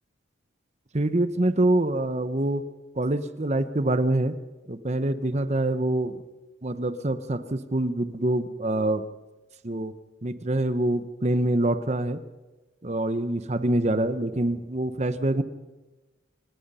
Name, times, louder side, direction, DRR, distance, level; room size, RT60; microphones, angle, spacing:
voice 1, 0.9-2.6 3.0-4.3 4.7-6.2 6.6-9.0 9.6-9.9 10.2-12.2 12.8-15.4, right 1 dB, 35° right, 11 dB, 1.0 m, -25 dB
28.0 x 18.0 x 5.6 m, 1.2 s
head